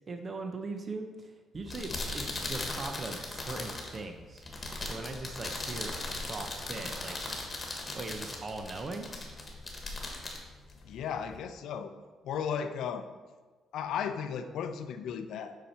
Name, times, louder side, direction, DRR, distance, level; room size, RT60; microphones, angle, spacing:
voice 1, 0.1-4.4 4.8-7.2 7.9-9.1, right 3 dB, 30° right, 5 dB, 0.6 m, -40 dB
sound 1, 1.5-11.4, left 2 dB, 25° left, 1.5 m, -39 dB
voice 2, 10.8-11.9 12.2-13.1 13.7-15.6, left 7 dB, 75° left, 9 dB, 0.6 m, -35 dB
8.2 x 5.8 x 4.3 m, 1.3 s
cardioid pair, 145°, 0 cm